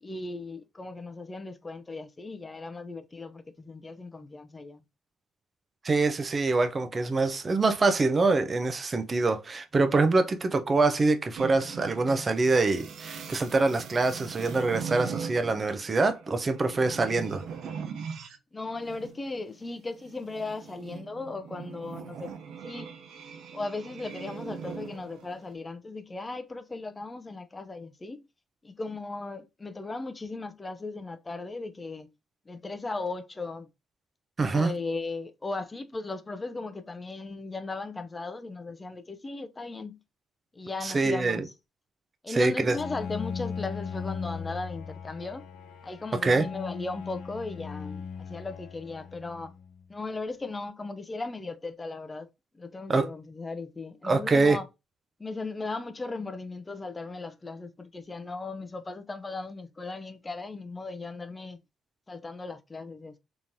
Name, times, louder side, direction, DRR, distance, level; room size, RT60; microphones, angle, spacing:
voice 1, 0.0-4.8 18.5-22.3 22.6-22.9 23.5-28.2 28.6-32.1 32.5-33.7 34.5-40.0 40.5-41.5 42.2-45.4 45.8-49.5 49.9-52.3 52.5-54.7 55.2-61.6 62.1-63.2, left 3 dB, 25° left, 0.5 m, -37 dB
voice 2, 5.8-17.4 34.4-34.7 40.8-41.4 42.3-42.8 46.2-46.5 52.9-53.0 54.0-54.6, right 3 dB, 35° right, 0.5 m, -25 dB
sound 1, 11.4-18.4 18.7-25.5, right 7 dB, 75° right, 0.6 m, -41 dB
Bowed string instrument, 42.7-49.8, left 6 dB, 80° left, 0.5 m, -38 dB
3.6 x 3.0 x 2.6 m
cardioid pair, 90°, 0 cm